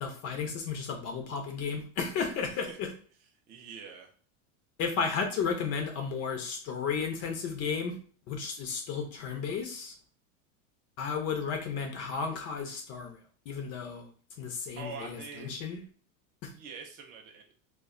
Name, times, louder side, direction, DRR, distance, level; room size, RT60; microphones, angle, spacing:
voice 1, 0.0-2.9 4.8-7.9 8.3-9.9 11.0-13.2 13.5-14.1 14.4-15.8 16.4-16.5, left 5 dB, 35° left, 4 dB, 0.5 m, -33 dB
voice 2, 2.5-2.8 3.5-4.1 14.8-15.5 16.5-17.4, right 5 dB, 25° right, 1 dB, 0.3 m, -44 dB
2.2 x 2.1 x 3.5 m, 0.43 s
supercardioid pair, 130°, 42 cm